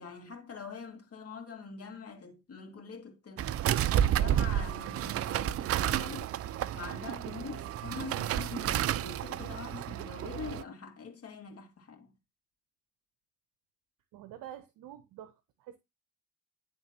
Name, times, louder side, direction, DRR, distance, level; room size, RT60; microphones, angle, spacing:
voice 1, 0.0-3.7 4.0-6.3 6.7-12.1, left 5 dB, 40° left, 2.4 m, -44 dB
sound 1, 3.4-10.6, right 11 dB, 40° right, 0.4 m, -31 dB
voice 2, 14.1-15.8, right 11 dB, 65° right, 0.8 m, -47 dB
10.5 x 3.7 x 2.9 m
hypercardioid pair, 65°, 37 cm